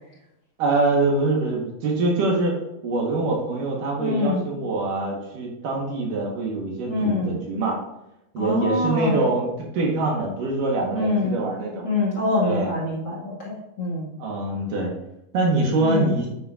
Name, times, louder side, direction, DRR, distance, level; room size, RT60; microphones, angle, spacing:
voice 1, 0.6-7.8 8.3-9.5 9.7-11.8 12.4-12.7 14.2-14.9 15.3-16.3, right 2 dB, 70° right, -1 dB, 3.2 m, -24 dB
voice 2, 4.0-4.4 6.9-7.4 8.4-9.2 10.9-11.4 11.8-14.1 15.8-16.1, left 2 dB, 30° left, -6 dB, 2.6 m, -25 dB
9.1 x 9.1 x 2.7 m, 0.87 s
omnidirectional pair, 4.1 m